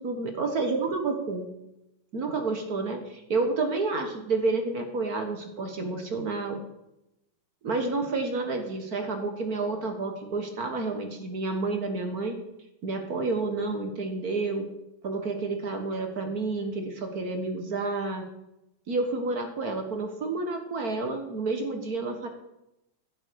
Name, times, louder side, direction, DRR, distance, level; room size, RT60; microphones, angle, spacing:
voice 1, 0.0-1.5 2.1-6.6 7.6-12.4 12.8-14.6 15.0-18.3 18.9-22.3, right 3 dB, 50° right, 5 dB, 1.1 m, -30 dB
15.5 x 8.0 x 4.7 m, 0.88 s
omnidirectional pair, 3.4 m